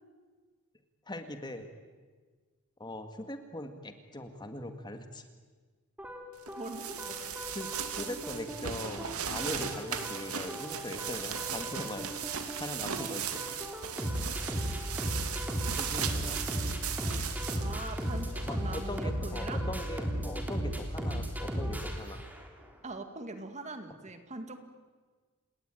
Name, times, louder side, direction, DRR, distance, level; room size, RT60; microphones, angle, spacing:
voice 1, 1.1-1.7 2.8-5.3 7.5-7.7 8.0-13.4 15.8-16.4 18.4-22.2, left 1 dB, 20° left, 7 dB, 2.0 m, -41 dB
sound 1, 6.0-22.6, equal, 10° right, 3.5 m, -36 dB
sound 2, 6.4-19.0, right 8 dB, 75° right, 2.6 m, -38 dB
voice 2, 6.6-7.5 17.6-19.6 22.8-24.6, right 2 dB, 30° right, 7 dB, 2.1 m, -43 dB
29.5 x 19.5 x 9.3 m, 1.4 s
head